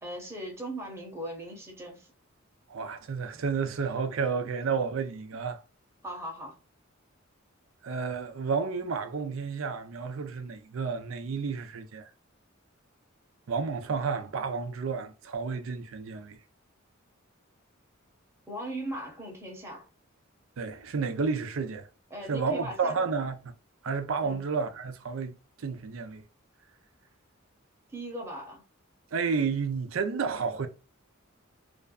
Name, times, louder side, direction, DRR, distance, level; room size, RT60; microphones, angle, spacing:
voice 1, 0.0-2.1 6.0-6.6 18.5-19.9 22.1-23.0 24.2-24.4 27.9-28.6, right 1 dB, 15° right, 0.8 m, -38 dB
voice 2, 2.7-5.6 7.8-12.1 13.5-16.4 20.6-21.9 22.3-23.5 23.8-26.2 29.1-30.7, right 5 dB, 75° right, 0.5 m, -31 dB
2.5 x 2.2 x 2.2 m
head